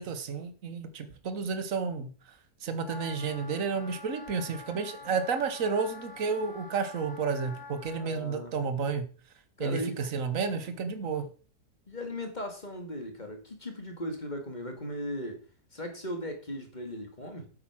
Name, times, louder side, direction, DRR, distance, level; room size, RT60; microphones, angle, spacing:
voice 1, 0.0-2.1 2.6-9.1 9.6-11.3, right 5 dB, 55° right, 1.6 m, -31 dB
Wind instrument woodwind instrument, 2.8-8.0, left 4 dB, 70° left, 2.1 m, -46 dB
voice 2, 8.0-8.6 9.6-10.0 11.9-15.4 15.7-17.5, left 1 dB, 25° left, 2.2 m, -37 dB
8.6 x 8.5 x 6.1 m
omnidirectional pair, 1.7 m